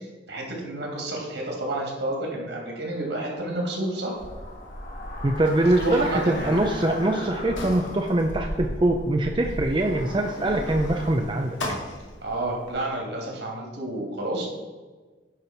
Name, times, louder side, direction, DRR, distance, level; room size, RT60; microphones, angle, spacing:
voice 1, 0.0-4.2 5.8-6.5 12.2-14.5, right 1 dB, 65° right, -1 dB, 2.8 m, -30 dB
sound 1, 1.9-10.5, left 2 dB, 40° left, 1.6 m, -41 dB
Sliding door, 4.1-12.7, left 1 dB, 80° left, 2.2 m, -36 dB
voice 2, 5.2-11.6, right 1 dB, 25° right, 3 dB, 0.5 m, -23 dB
10.5 x 5.7 x 4.4 m, 1.3 s
head